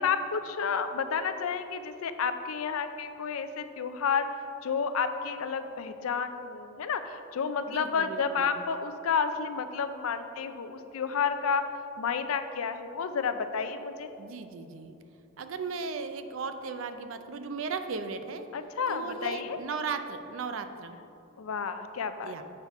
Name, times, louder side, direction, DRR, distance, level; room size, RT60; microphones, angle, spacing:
voice 1, 0.0-4.3 4.6-11.6 12.0-14.1 18.5-19.6 21.4-22.3, left 6 dB, 85° left, 10 dB, 0.5 m, -31 dB
voice 2, 7.7-8.6 14.2-14.9 15.4-18.5 18.9-21.0 22.2-22.4, right 4 dB, 65° right, 8 dB, 0.5 m, -36 dB
7.4 x 4.4 x 5.6 m, 2.8 s
head